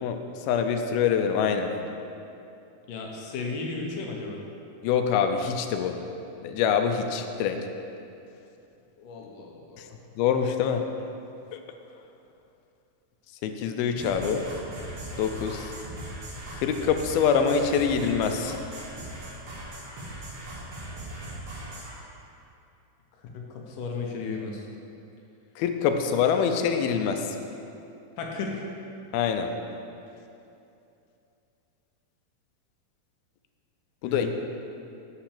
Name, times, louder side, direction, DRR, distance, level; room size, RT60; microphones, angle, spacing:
voice 1, 0.5-1.7 4.8-6.0 6.4-7.6 10.2-10.9 11.5-11.6 13.4-14.4 15.2-15.7 16.6-18.5 25.6-27.3 29.1-29.5 34.0-34.3, left 7 dB, 90° left, 6 dB, 2.5 m, -25 dB
voice 2, 2.9-4.4 9.0-9.9 14.2-14.4 23.3-24.7 28.2-28.7 34.0-34.3, left 4 dB, 75° left, 0 dB, 2.3 m, -34 dB
sound 1, 14.0-22.0, right 1 dB, 55° right, 3.3 m, -39 dB
8.6 x 5.8 x 6.6 m, 2.7 s
omnidirectional pair, 4.3 m